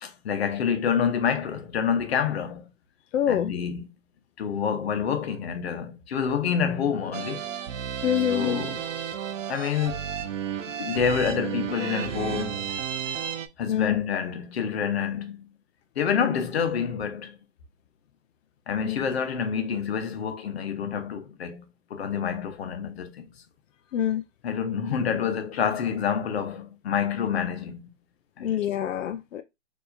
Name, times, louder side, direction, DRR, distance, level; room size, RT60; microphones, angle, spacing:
voice 1, 0.0-2.7 3.3-3.9 4.4-7.5 8.3-8.8 9.5-10.0 10.8-12.8 13.6-15.5 16.0-17.4 18.7-23.3 24.4-27.9 28.4-28.7, left 7 dB, 55° left, 0.9 m, -28 dB
voice 2, 3.1-3.5 8.0-8.6 13.7-14.0 18.9-19.0 23.9-24.2 28.4-29.4, left 10 dB, 85° left, 0.5 m, -25 dB
sound 1, 7.1-13.5, right 9 dB, 85° right, 0.7 m, -32 dB
4.6 x 2.8 x 2.6 m
hypercardioid pair, 170°, 37 cm